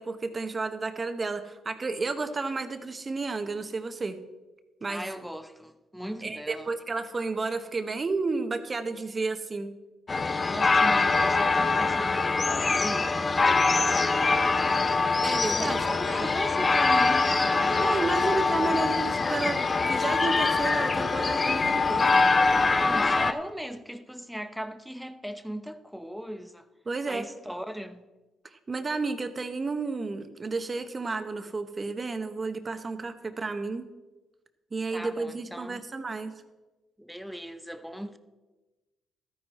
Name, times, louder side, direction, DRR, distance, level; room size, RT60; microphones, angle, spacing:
voice 1, 0.0-4.2 4.8-5.0 6.2-9.7 15.2-16.3 17.8-22.6 26.9-27.3 28.7-33.9 34.7-36.3, right 3 dB, 30° right, 1.0 m, -32 dB
voice 2, 4.9-6.7 10.5-13.1 13.5-14.6 15.6-17.6 22.8-26.7 27.1-28.0 34.9-35.8 37.0-38.2, equal, ahead, 0.7 m, -38 dB
sound 1, 10.1-23.3, left 3 dB, 30° left, 0.6 m, -24 dB
13.0 x 9.8 x 4.2 m
cardioid pair, 90°, 0 cm